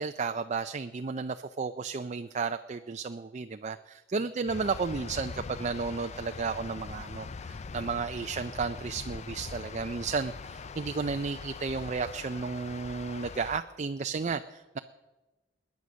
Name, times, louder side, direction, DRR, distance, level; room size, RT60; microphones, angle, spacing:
voice 1, 0.0-14.8, right 4 dB, 35° right, 9 dB, 0.4 m, -33 dB
sound 1, 4.5-13.6, left 4 dB, 35° left, 0.4 m, -42 dB
21.0 x 9.5 x 6.4 m, 1.1 s
head